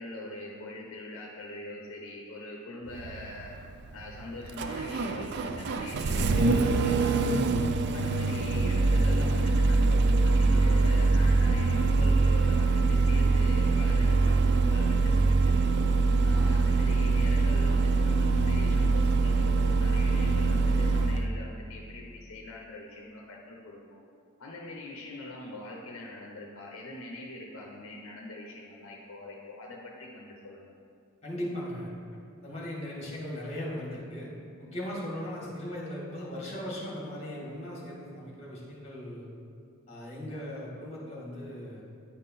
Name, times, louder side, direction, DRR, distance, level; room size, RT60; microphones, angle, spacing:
voice 1, 0.0-3.6 3.9-7.6 7.9-15.6 16.2-24.0 24.4-30.7, left 1 dB, 70° left, -1 dB, 0.6 m, -42 dB
Engine starting, 2.9-21.3, right 3 dB, 50° right, 0.3 m, -24 dB
voice 2, 31.2-31.9 32.4-34.3 34.6-39.3 39.9-41.8, left 1 dB, 30° left, -5 dB, 1.7 m, -38 dB
9.7 x 3.7 x 4.1 m, 2.5 s
head